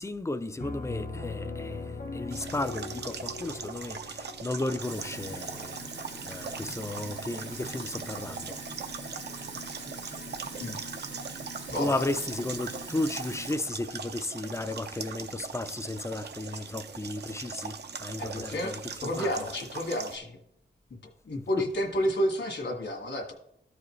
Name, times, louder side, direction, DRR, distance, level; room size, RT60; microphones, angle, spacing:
voice 1, 0.0-5.8 6.2-8.6 11.8-18.7 19.0-19.4, left 2 dB, 15° left, 0.4 m, -34 dB
Piano, 0.6-6.1, left 3 dB, 60° left, 1.1 m, -40 dB
sound 1, 2.3-20.2, right 5 dB, 65° right, 0.6 m, -41 dB
Sink (filling or washing), 4.8-13.5, right 2 dB, 80° right, 1.5 m, -42 dB
voice 2, 11.7-12.0 18.2-18.8 19.0-20.4 21.3-23.3, equal, 75° left, 1.9 m, -30 dB
14.0 x 4.9 x 3.2 m
wide cardioid pair, 125°, 19 cm